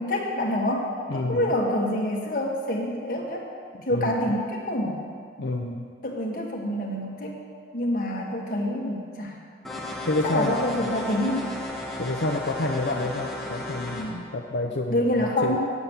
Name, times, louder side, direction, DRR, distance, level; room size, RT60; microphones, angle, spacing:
voice 1, 0.0-3.5 3.8-5.0 6.0-7.3 7.7-9.3 10.2-11.5 14.9-15.7, left 1 dB, 50° left, -1 dB, 1.6 m, -27 dB
voice 2, 1.1-1.5 3.9-4.2 5.4-5.9 10.1-10.8 12.0-15.5, left 2 dB, 80° left, 1 dB, 0.7 m, -28 dB
sound 1, 9.6-14.0, left 1 dB, ahead, 1.4 m, -34 dB
9.5 x 7.9 x 7.2 m, 2.1 s
head